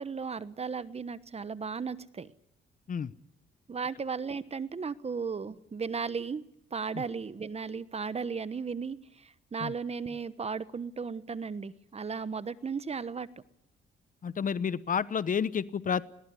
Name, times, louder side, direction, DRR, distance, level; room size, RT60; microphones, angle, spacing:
voice 1, 0.0-2.3 3.7-6.4 6.7-13.3, right 5 dB, 30° right, 15 dB, 1.1 m, -35 dB
voice 2, 14.2-16.0, left 7 dB, 40° left, 17 dB, 0.9 m, -30 dB
21.5 x 19.0 x 9.8 m, 0.77 s
cardioid pair, 90°, 20 cm